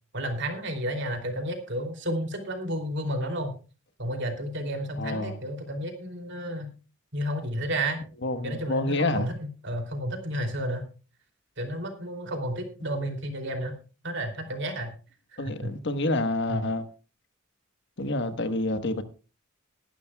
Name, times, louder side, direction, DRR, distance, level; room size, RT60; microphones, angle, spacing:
voice 1, 0.1-3.5 4.0-6.7 7.1-8.0 8.4-9.3 9.6-10.9 11.6-13.7 14.0-14.9 15.3-15.7 16.5-16.6, equal, 60° right, 2.9 m, -31 dB
voice 2, 5.0-5.4 8.2-9.3 15.4-16.9 18.0-19.0, left 2 dB, 60° left, 1.3 m, -28 dB
21.0 x 12.0 x 2.3 m
head